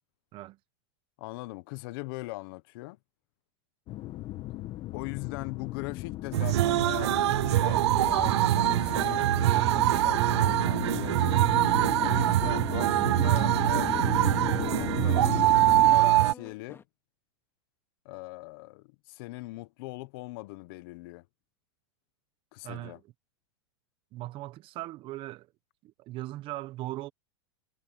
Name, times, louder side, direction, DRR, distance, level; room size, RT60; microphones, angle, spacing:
voice 1, 1.2-3.0 4.9-9.3 9.5-11.4 12.0-15.4 15.7-16.8 18.0-21.2 22.5-23.0, left 23 dB, 55° left, 1.2 m, -40 dB
sound 1, 3.9-16.0, left 16 dB, 35° left, 1.6 m, -36 dB
sound 2, 6.3-16.3, right 15 dB, 75° right, 0.6 m, -24 dB
sound 3, 10.4-12.9 13.2-16.8, left 6 dB, 15° left, 2.2 m, -48 dB
voice 2, 22.6-23.0 24.1-25.5 25.8-27.1, right 17 dB, 35° right, 1.2 m, -39 dB
supercardioid pair, 135°, 14 cm